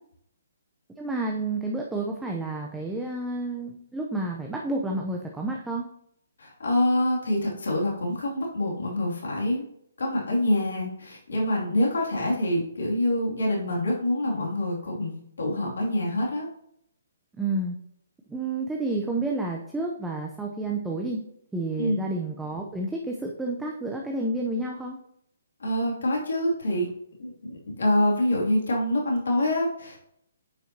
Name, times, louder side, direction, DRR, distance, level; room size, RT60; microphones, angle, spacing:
voice 1, 1.0-5.8 17.4-17.8 18.3-21.2 21.5-25.0, right 2 dB, 5° right, 0 dB, 0.7 m, -30 dB
voice 2, 6.4-9.6 10.0-16.5 21.8-22.1 25.6-26.9 27.2-30.0, left 1 dB, 75° left, -2 dB, 2.7 m, -26 dB
9.4 x 5.6 x 2.9 m, 0.71 s
hypercardioid pair, 145°, 0 cm